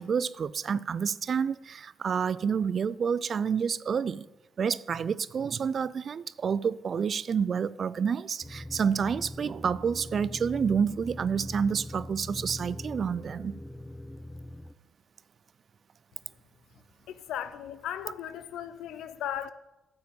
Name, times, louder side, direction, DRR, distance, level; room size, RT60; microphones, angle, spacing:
voice 1, 0.0-4.3 4.6-13.5, right 6 dB, 50° right, 0.3 m, -29 dB
sound 1, 8.4-14.7, left 1 dB, 10° left, 0.6 m, -42 dB
voice 2, 17.1-19.5, left 10 dB, 80° left, 0.6 m, -36 dB
9.3 x 7.9 x 5.3 m
cardioid pair, 90°, 0 cm